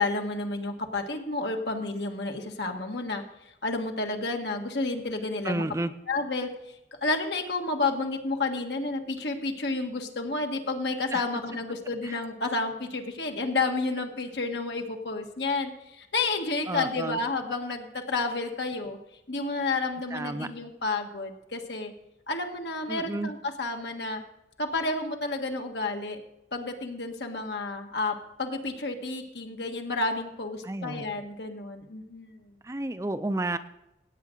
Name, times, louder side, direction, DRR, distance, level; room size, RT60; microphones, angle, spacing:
voice 1, 0.0-3.2 3.6-5.6 6.1-19.0 19.3-21.9 22.3-24.2 24.6-26.2 26.5-32.5, left 3 dB, 80° left, 3 dB, 1.7 m, -31 dB
voice 2, 5.4-5.9 11.1-11.2 12.0-12.2 16.7-17.2 20.1-20.5 22.9-23.3 30.6-31.1 32.6-33.6, right 2 dB, 15° right, 11 dB, 0.4 m, -31 dB
16.5 x 8.9 x 3.9 m, 0.85 s
head